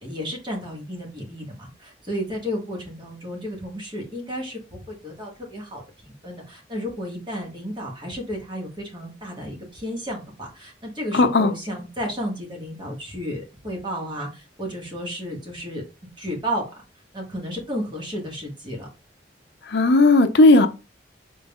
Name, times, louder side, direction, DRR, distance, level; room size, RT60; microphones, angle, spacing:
voice 1, 0.0-15.8 16.2-16.6 17.1-18.9, equal, 25° right, 1.6 m, -32 dB
voice 2, 11.1-11.5 19.7-20.7, left 2 dB, 65° left, 0.7 m, -15 dB
5.3 x 3.9 x 2.4 m
head